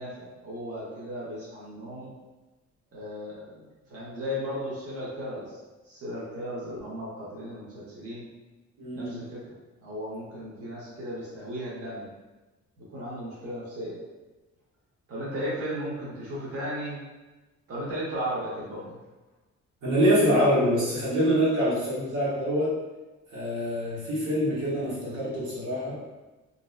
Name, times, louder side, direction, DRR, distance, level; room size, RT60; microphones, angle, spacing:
voice 1, 0.0-2.1 2.9-5.6 5.8-8.3 8.9-12.1 12.8-14.0 15.1-17.0 17.7-19.0, equal, 50° right, -7 dB, 0.9 m, -35 dB
voice 2, 8.8-9.2 19.8-22.7 23.3-26.0, equal, 80° right, -8 dB, 1.1 m, -25 dB
2.6 x 2.1 x 2.4 m, 1.2 s
cardioid pair, 90°, 30 cm